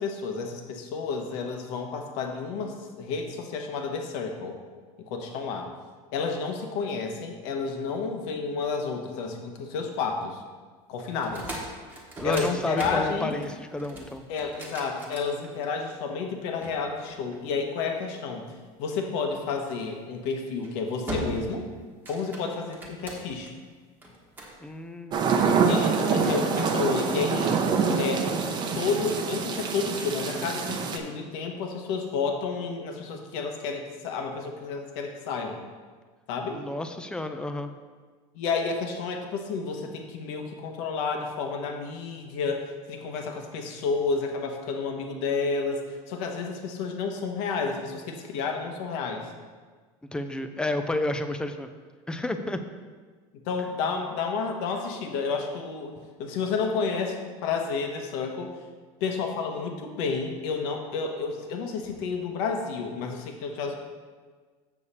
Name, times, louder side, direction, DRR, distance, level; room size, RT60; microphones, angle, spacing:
voice 1, 0.0-4.6 5.0-5.7 6.1-10.4 10.9-11.5 12.2-13.4 14.3-18.4 18.8-21.7 22.1-23.5 25.6-27.6 28.0-28.3 28.7-35.6 36.3-36.6 38.3-49.3 53.5-55.9 56.2-58.5 59.0-63.7, left 4 dB, 70° left, 3 dB, 1.2 m, -31 dB
voice 2, 11.1-11.5 12.2-14.2 24.6-25.7 26.1-26.4 36.5-37.7 50.1-51.7 52.1-52.6, left 2 dB, 5° left, 8 dB, 0.4 m, -31 dB
sound 1, 11.2-15.9 16.6-17.9 19.7-20.0 20.5-20.7 21.1-21.6 21.9-23.5 24.0-24.6, right 1 dB, 10° right, 1.3 m, -38 dB
sound 2, 25.1-31.0, right 5 dB, 30° right, 0.7 m, -25 dB
7.2 x 6.6 x 4.2 m, 1.5 s
cardioid pair, 150°, 15 cm